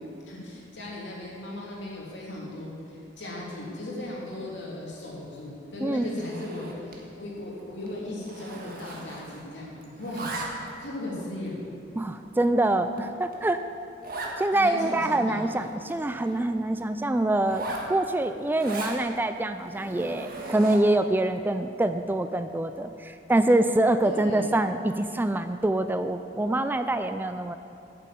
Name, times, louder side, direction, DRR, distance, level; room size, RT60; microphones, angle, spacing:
voice 1, 0.2-10.3 10.8-11.7 14.5-15.5 24.0-24.6, left 1 dB, 70° left, -4 dB, 3.0 m, -37 dB
voice 2, 5.8-6.2 12.0-13.6 14.2-27.6, right 1 dB, 10° right, 9 dB, 0.3 m, -25 dB
Zipper (clothing), 6.1-7.1 7.4-7.6 7.9-9.6 9.8-10.8 11.4-11.5 12.1-12.2 12.6-12.7 13.0-13.1 13.3-13.4 14.0-14.4 14.8-14.9 15.1-16.4 17.4-19.0 19.6-21.0, right 2 dB, 50° right, 1.6 m, -38 dB
9.2 x 7.7 x 8.4 m, 2.6 s
head